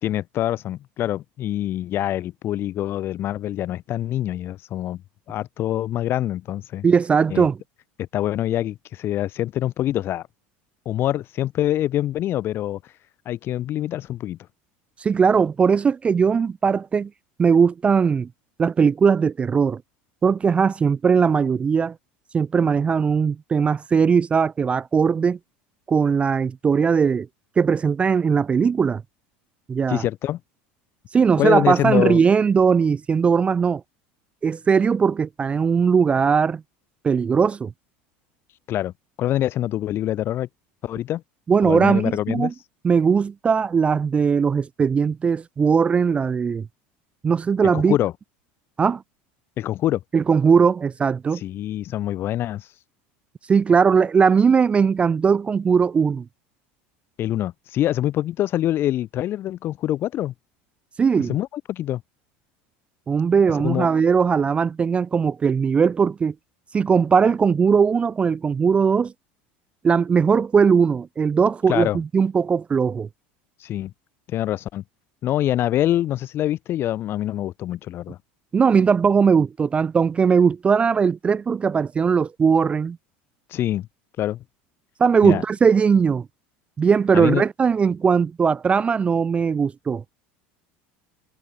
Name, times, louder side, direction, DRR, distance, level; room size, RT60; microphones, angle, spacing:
voice 1, 0.0-5.0 5.3-6.9 7.3-7.5 8.0-10.3 10.8-12.8 13.3-14.4 29.9-30.4 31.4-32.2 38.7-38.9 39.2-40.5 40.8-41.2 41.6-42.5 47.7-48.1 49.6-50.0 51.3-52.7 57.2-60.3 61.2-62.0 63.6-63.9 71.7-72.0 73.6-73.9 74.3-74.8 75.2-78.2 83.5-83.9 84.2-84.4 85.2-85.4 87.1-87.4, left 13 dB, 45° left, 1.0 m, -25 dB
voice 2, 6.8-7.6 15.0-17.1 17.4-18.3 18.6-19.8 20.2-21.9 22.3-25.4 25.9-27.3 27.6-29.0 29.7-30.0 31.1-33.8 34.4-36.6 37.0-37.7 41.5-42.5 42.8-46.7 47.2-48.0 48.8-49.0 50.1-51.4 53.5-56.2 61.0-61.3 63.1-66.3 66.7-69.1 69.8-73.1 78.5-83.0 85.0-86.3 86.8-90.0, right 6 dB, 20° right, 0.3 m, -19 dB
supercardioid pair, 105°, 5 cm